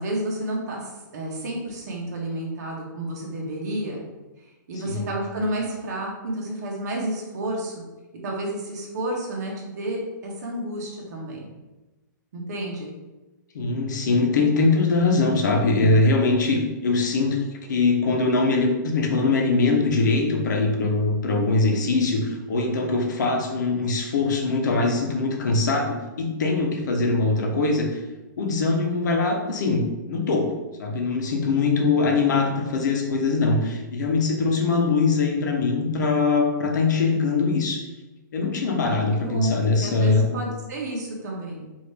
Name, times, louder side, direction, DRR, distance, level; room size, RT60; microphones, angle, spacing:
voice 1, 0.0-4.0 4.7-7.8 8.2-11.5 12.3-12.9 38.9-39.5 39.8-41.6, right 1 dB, 55° right, -2 dB, 1.3 m, -30 dB
voice 2, 13.5-28.0 28.4-37.8 38.3-40.2, left 3 dB, 65° left, 1 dB, 1.0 m, -22 dB
5.0 x 2.8 x 3.4 m, 1.1 s
hypercardioid pair, 170°, 11 cm